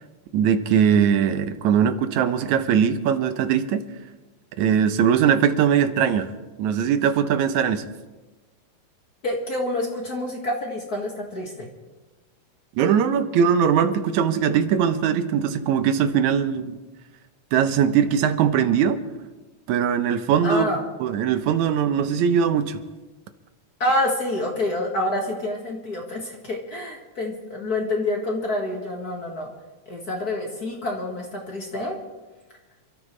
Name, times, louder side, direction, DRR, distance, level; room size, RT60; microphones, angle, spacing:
voice 1, 0.3-3.8 4.6-6.3 6.6-7.9 12.8-16.8 17.5-19.0 19.7-20.7 21.0-22.8, right 8 dB, 80° right, 10 dB, 2.2 m, -20 dB
voice 2, 9.2-11.7 20.4-20.8 23.8-29.5 29.9-32.0, left 1 dB, 40° left, 0 dB, 1.8 m, -27 dB
28.0 x 13.5 x 3.2 m, 1.2 s
omnidirectional pair, 3.4 m